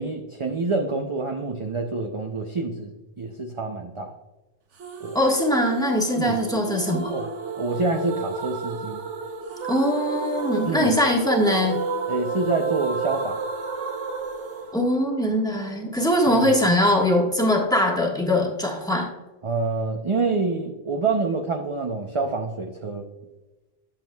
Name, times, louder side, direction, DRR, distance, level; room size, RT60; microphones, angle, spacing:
voice 1, 0.0-4.1 5.0-5.2 6.2-6.4 7.1-7.3 7.6-9.0 10.7-10.9 12.1-13.4 16.3-16.5 19.4-23.0, right 3 dB, 40° right, 3 dB, 0.5 m, -27 dB
sound 1, 4.8-15.7, right 4 dB, 75° right, 1.2 m, -31 dB
voice 2, 5.1-7.1 9.7-11.8 14.7-19.1, left 1 dB, 5° left, 0 dB, 1.3 m, -22 dB
10.5 x 7.3 x 2.3 m, 1.1 s
omnidirectional pair, 1.2 m